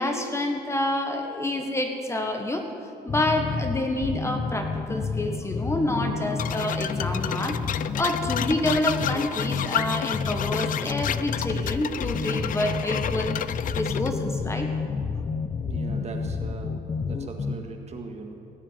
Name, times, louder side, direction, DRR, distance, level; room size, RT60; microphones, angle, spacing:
voice 1, 0.0-2.7 3.0-14.7, left 1 dB, 15° left, 4 dB, 1.4 m, -28 dB
sound 1, 3.1-17.5, left 5 dB, 30° left, 0.8 m, -30 dB
sound 2, 6.4-14.1, left 10 dB, 55° left, 0.5 m, -31 dB
voice 2, 15.6-18.3, right 4 dB, 40° right, 3 dB, 1.8 m, -39 dB
17.5 x 7.0 x 9.7 m, 2.4 s
cardioid pair, 115°, 17 cm